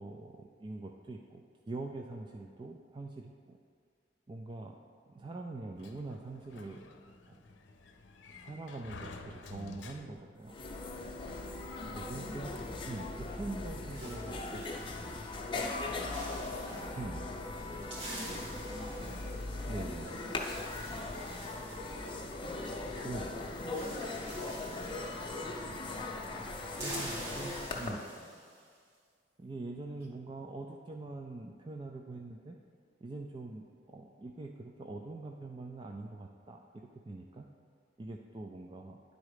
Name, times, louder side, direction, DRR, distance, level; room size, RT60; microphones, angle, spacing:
voice 1, 0.0-3.6 4.3-4.8 5.1-6.9 7.3-7.4 8.4-10.5 11.9-12.5 12.8-13.1 13.3-15.2 17.0-17.3 19.7-20.2 23.0-23.6 26.7-28.0 29.4-32.6 33.0-37.5 38.0-39.0, right 2 dB, 25° right, 2 dB, 0.3 m, -44 dB
Sliding door, 5.8-10.5, left 3 dB, 85° left, 0.6 m, -50 dB
sound 1, 10.2-10.3 10.4-27.9, left 2 dB, 30° left, 0.6 m, -39 dB
voice 2, 11.2-12.6 13.0-13.1 15.9-17.3 17.6-18.5 18.9-19.3 19.6-25.6 27.8-28.4, equal, 55° right, -2 dB, 1.4 m, -56 dB
sound 2, 13.4-15.3 15.6-15.8 16.1-17.0 17.5-23.0 23.3-23.4 23.6-26.0 26.2-28.7, right 1 dB, 80° right, 2.2 m, -48 dB
10.0 x 4.1 x 4.9 m, 2.1 s
head